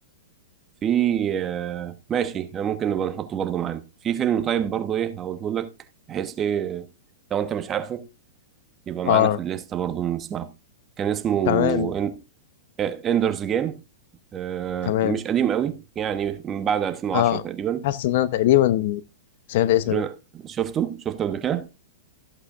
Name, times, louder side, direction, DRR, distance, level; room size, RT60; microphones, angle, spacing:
voice 1, 0.8-5.7 6.1-6.9 7.3-8.1 8.9-10.5 11.0-12.2 12.8-13.8 14.3-17.9 19.9-21.7, right 9 dB, 25° right, 1.1 m, -26 dB
voice 2, 9.0-9.4 11.5-11.9 14.8-15.2 17.1-17.4 17.8-19.0 19.5-20.0, left 13 dB, 60° left, 0.8 m, -21 dB
14.5 x 8.2 x 2.5 m
hypercardioid pair, 135°, 0 cm